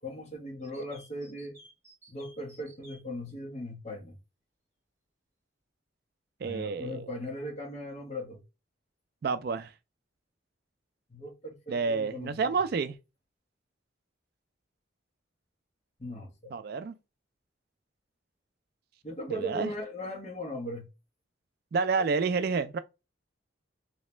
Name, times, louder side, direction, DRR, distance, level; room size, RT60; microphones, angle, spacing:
voice 1, 0.0-1.6 2.1-4.2 6.4-8.4 11.1-12.6 16.0-16.6 19.0-20.9, equal, 35° left, 1.2 m, -38 dB
sound 1, 0.6-3.0, right 1 dB, 15° right, 1.5 m, -55 dB
voice 2, 6.4-7.1 9.2-9.7 11.7-13.0 16.5-16.9 19.3-19.7 21.7-22.8, right 4 dB, 50° right, 0.3 m, -29 dB
3.2 x 2.8 x 3.2 m
head